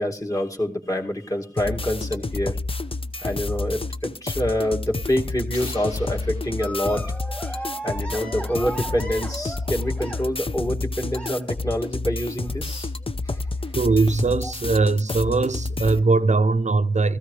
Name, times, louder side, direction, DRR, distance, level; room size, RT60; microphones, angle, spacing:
voice 1, 0.0-2.6 3.2-7.0 7.8-12.9 13.3-13.4, equal, 25° left, 2.3 m, -26 dB
sound 1, 1.6-16.0, left 3 dB, 40° left, 0.7 m, -30 dB
sound 2, 5.5-7.4, left 2 dB, 55° left, 3.2 m, -45 dB
sound 3, 6.6-10.6 11.1-11.7 12.7-13.0 13.5-13.6 14.9-15.0 15.8-15.9, right 1 dB, 10° left, 2.0 m, -36 dB
voice 2, 13.8-17.2, right 3 dB, 60° right, 0.6 m, -20 dB
16.5 x 15.0 x 3.2 m
wide cardioid pair, 65°, 14 cm